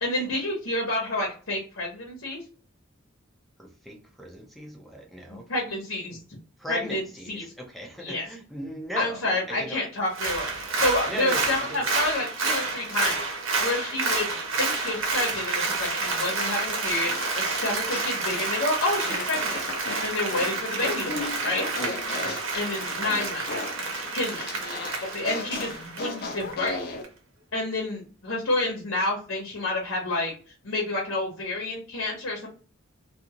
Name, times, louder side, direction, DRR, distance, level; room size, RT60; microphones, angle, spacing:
voice 1, 0.0-2.4 5.3-6.2 6.7-7.0 7.3-7.4 8.0-8.2 9.0-10.5 10.8-13.2 13.6-14.3 14.6-19.6 20.0-21.7 22.6-23.7 24.1-24.5 25.0-26.8 27.5-30.3 30.6-32.5, left 2 dB, 85° left, -2 dB, 1.0 m, -29 dB
voice 2, 3.6-5.5 6.6-9.8 11.1-11.9, right 1 dB, ahead, 2 dB, 0.5 m, -37 dB
Applause, 10.1-26.7 27.0-27.1, right 3 dB, 85° right, 0.9 m, -29 dB
sound 1, 16.1-18.6 19.0-27.0, left 3 dB, 50° left, 0.6 m, -36 dB
2.5 x 2.4 x 2.8 m, 0.39 s
head